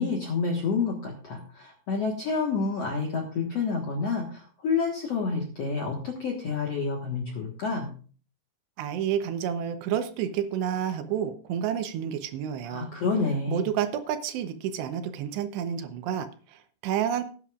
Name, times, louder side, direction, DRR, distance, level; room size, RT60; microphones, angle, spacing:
voice 1, 0.0-7.9 12.7-13.7, left 4 dB, 55° left, 1 dB, 1.9 m, -29 dB
voice 2, 8.8-12.9 13.5-17.2, right 9 dB, 85° right, 9 dB, 3.2 m, -30 dB
18.5 x 9.8 x 2.5 m, 0.39 s
omnidirectional pair, 4.8 m